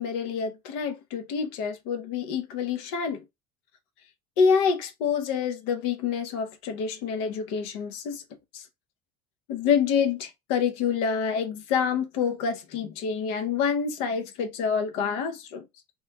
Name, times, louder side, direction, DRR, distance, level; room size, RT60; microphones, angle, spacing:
voice 1, 0.0-3.2 4.4-8.2 8.5-8.6 9.5-15.6, left 6 dB, 75° left, 0.6 m, -27 dB
3.0 x 2.3 x 3.2 m
cardioid pair, 155°, 11 cm